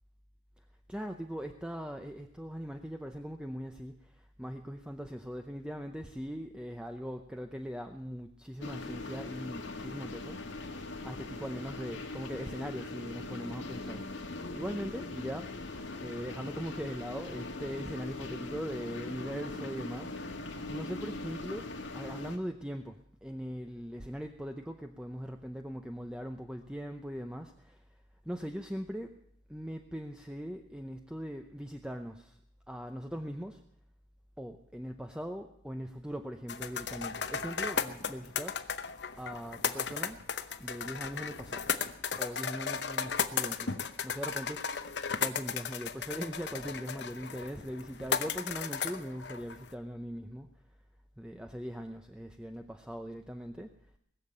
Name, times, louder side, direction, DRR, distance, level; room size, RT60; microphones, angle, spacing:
voice 1, 0.9-10.6 11.0-14.2 14.5-15.5 16.0-20.4 20.7-21.7 21.9-27.8 28.2-29.1 29.5-32.4 32.7-33.6 34.4-38.7 39.2-40.2 40.6-41.7 42.2-44.7 45.2-50.5 51.2-53.7, equal, 5° right, 5 dB, 0.6 m, -40 dB
sound 1, 8.6-22.4, left 2 dB, 90° left, 2.0 m, -41 dB
sound 2, 36.5-49.7, left 6 dB, 65° left, 0.8 m, -35 dB
20.0 x 7.3 x 8.7 m, 0.70 s
head